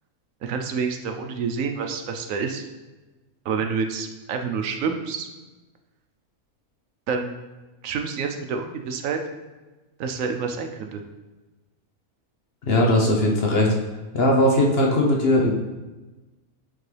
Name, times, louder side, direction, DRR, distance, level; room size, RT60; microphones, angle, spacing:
voice 1, 0.4-2.7 3.4-5.3 7.1-7.3 7.8-9.2 10.0-11.0, right 5 dB, 70° right, 5 dB, 0.9 m, -28 dB
voice 2, 12.7-13.7 14.1-15.5, left 1 dB, 50° left, -1 dB, 0.9 m, -19 dB
7.6 x 3.8 x 3.2 m, 1.2 s
omnidirectional pair, 1.5 m